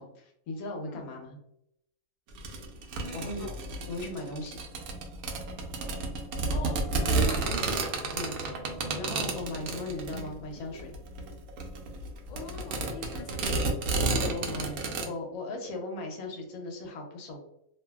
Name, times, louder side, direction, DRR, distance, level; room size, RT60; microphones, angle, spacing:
voice 1, 0.0-1.4 3.1-3.5 3.9-4.6 8.1-8.4 9.0-10.9 14.1-17.4, left 2 dB, 90° left, 2 dB, 1.2 m, -37 dB
sound 1, 2.3-15.0, right 3 dB, 85° right, 1.0 m, -31 dB
voice 2, 3.0-3.6 6.5-7.9 12.3-13.8, left 3 dB, 45° left, -2 dB, 0.5 m, -43 dB
2.7 x 2.6 x 2.2 m, 0.77 s
omnidirectional pair, 1.5 m